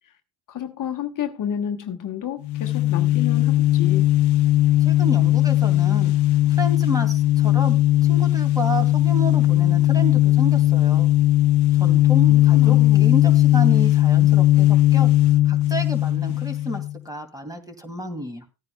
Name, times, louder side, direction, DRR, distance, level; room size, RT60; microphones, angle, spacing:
voice 1, 0.5-4.1 12.3-13.0, left 9 dB, 50° left, 5 dB, 1.2 m, -30 dB
sound 1, 2.4-17.0, left 14 dB, 75° left, 0.7 m, -18 dB
voice 2, 4.8-6.1 6.4-11.1 11.7-15.1 15.5-18.4, equal, 10° right, 6 dB, 2.5 m, -31 dB
17.0 x 9.5 x 2.3 m, 0.26 s
supercardioid pair, 70°, 40 cm